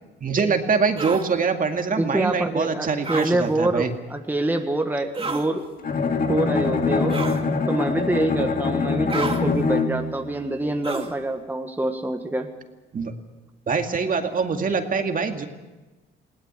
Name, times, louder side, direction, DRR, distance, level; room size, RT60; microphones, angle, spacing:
voice 1, 0.2-3.9 12.9-13.1 13.7-15.5, right 5 dB, 45° right, 5 dB, 2.2 m, -24 dB
sound 1, 1.0-1.3 3.0-3.3 5.1-5.5 7.1-7.4 9.1-9.4 10.8-11.2, right 3 dB, 25° right, 2.4 m, -29 dB
voice 2, 1.9-5.6 6.3-7.2 7.7-12.5, right 2 dB, 10° right, 4 dB, 1.6 m, -25 dB
Bowed string instrument, 5.8-10.2, left 4 dB, 45° left, 2.1 m, -24 dB
20.5 x 18.0 x 8.1 m, 1.1 s
cardioid pair, 90°, 20 cm